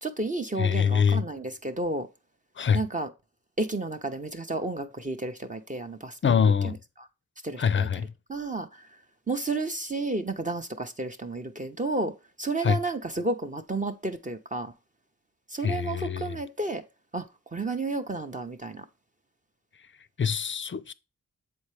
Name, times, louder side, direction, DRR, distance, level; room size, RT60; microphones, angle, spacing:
voice 1, 0.0-2.1 2.7-3.1 3.6-6.8 7.4-7.9 8.3-8.9 9.3-14.7 15.5-16.8 17.1-18.9, right 2 dB, 25° right, 0.6 m, -32 dB
voice 2, 0.6-1.2 2.6-2.8 6.2-6.8 7.6-8.1 12.6-12.8 15.6-16.4 20.2-20.9, left 7 dB, 40° left, 0.5 m, -24 dB
7.4 x 4.3 x 3.2 m
cardioid pair, 65°, 32 cm